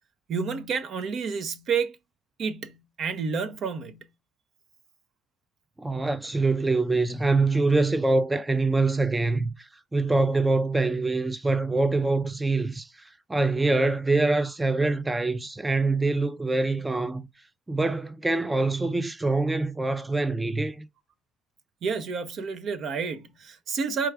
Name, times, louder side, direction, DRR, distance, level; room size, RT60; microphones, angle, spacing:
voice 1, 0.3-2.0 2.4-4.1 21.8-24.1, right 5 dB, 60° right, 0.7 m, -30 dB
voice 2, 5.8-17.3 17.7-20.9, right 3 dB, 15° right, 0.5 m, -25 dB
4.6 x 2.4 x 4.6 m
supercardioid pair, 70°, 0 cm